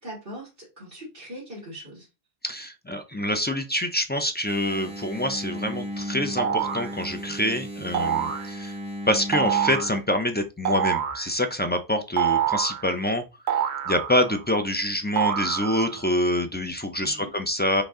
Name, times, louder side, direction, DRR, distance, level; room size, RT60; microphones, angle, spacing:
voice 1, 0.0-2.1 17.0-17.3, equal, 60° right, -6 dB, 2.0 m, -41 dB
voice 2, 2.4-8.7 9.1-13.2 13.5-13.6 13.9-17.8, left 1 dB, 15° left, 6 dB, 0.3 m, -26 dB
Engine, 4.5-10.0, equal, 5° right, 1.2 m, -35 dB
sound 1, 6.4-6.9 7.9-8.5 9.3-9.9 10.6-11.3 12.2-12.8 13.5-14.4 15.2-16.0, right 9 dB, 85° right, 1.0 m, -26 dB
5.1 x 2.6 x 3.7 m, 0.27 s
omnidirectional pair, 1.1 m